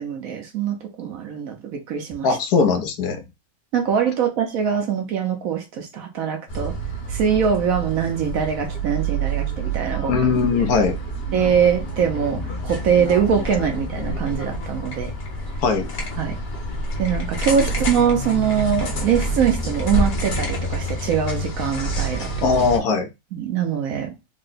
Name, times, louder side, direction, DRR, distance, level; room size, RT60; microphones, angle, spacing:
voice 1, 0.0-2.4 3.7-6.8 7.1-10.2 11.3-15.1 16.2-16.4 17.0-22.3 23.3-24.2, right 7 dB, 70° right, 1.0 m, -23 dB
voice 2, 2.2-3.2 10.1-11.0 15.6-15.9 22.4-23.1, left 5 dB, 80° left, 1.3 m, -20 dB
sound 1, 6.5-22.8, right 2 dB, 45° left, 1.1 m, -27 dB
3.6 x 2.2 x 3.8 m
omnidirectional pair, 1.6 m